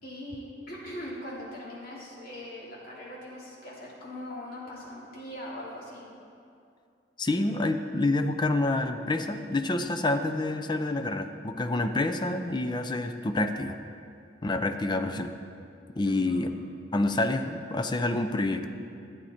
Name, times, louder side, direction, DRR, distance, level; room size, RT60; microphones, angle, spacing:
voice 1, 0.0-6.1 16.1-16.4, left 1 dB, 55° left, -6 dB, 2.7 m, -41 dB
voice 2, 7.2-13.8 14.4-15.3 16.0-16.5 16.9-18.7, left 2 dB, 25° left, 7 dB, 0.5 m, -28 dB
12.0 x 8.7 x 4.3 m, 2.5 s
head